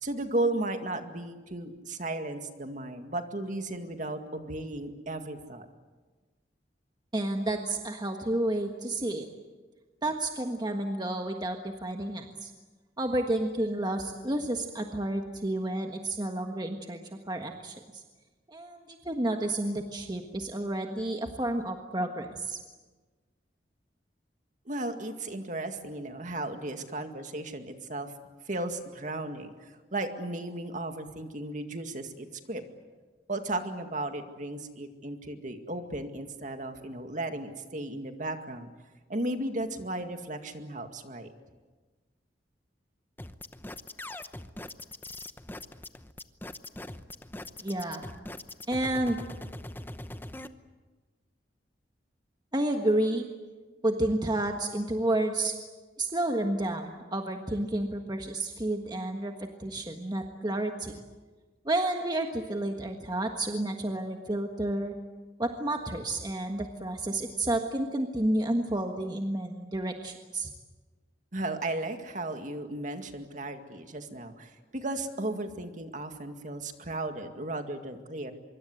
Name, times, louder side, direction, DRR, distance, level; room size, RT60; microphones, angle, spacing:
voice 1, 0.0-5.7 24.7-28.1 28.5-32.6 33.3-38.7 39.1-41.3 71.3-78.3, right 2 dB, 45° right, 6 dB, 2.1 m, -35 dB
voice 2, 7.1-9.3 10.0-12.5 13.0-17.0 17.3-18.0 18.5-22.6 47.6-48.0 48.7-49.2 52.5-53.2 53.8-55.5 56.0-60.9 61.6-64.9 65.4-70.5, right 1 dB, 25° right, 4 dB, 1.5 m, -30 dB
sound 1, 43.2-50.5, left 1 dB, 10° left, 0.8 m, -41 dB
25.0 x 23.5 x 7.9 m, 1.3 s
head